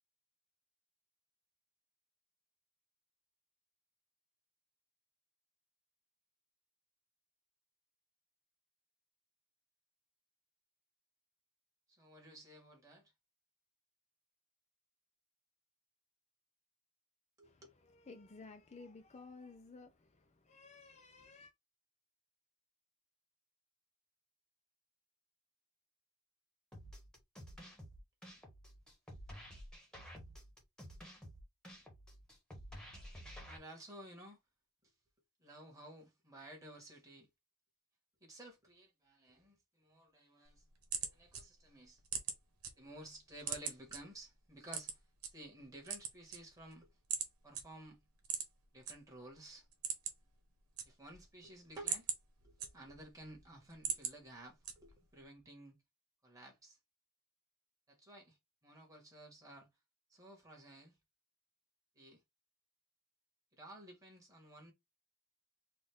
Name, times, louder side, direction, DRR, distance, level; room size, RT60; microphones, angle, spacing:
voice 1, 11.9-13.1 17.4-17.5 33.4-34.4 34.8-34.9 35.4-37.3 38.2-40.6 41.1-42.0 42.7-45.0 45.3-46.9 47.4-48.0 48.7-49.7 50.8-52.1 52.4-55.7 56.2-56.8 57.9-58.4 58.6-59.7 60.1-61.0 61.9-62.2 63.5-64.7, right 1 dB, 15° right, 1.6 m, -54 dB
voice 2, 17.4-21.5, left 3 dB, 30° left, 0.5 m, -55 dB
sound 1, 26.7-33.6, equal, 5° left, 1.2 m, -52 dB
sound 2, 40.5-42.7 43.1-44.0 44.7-45.3 45.8-46.7 47.1-47.3 47.5-47.6 48.2-48.9 49.3-49.4 49.7-50.3 50.6-51.3 51.6-53.1 53.5-54.1 54.6-55.1, right 7 dB, 90° right, 1.2 m, -40 dB
4.1 x 2.5 x 3.5 m
head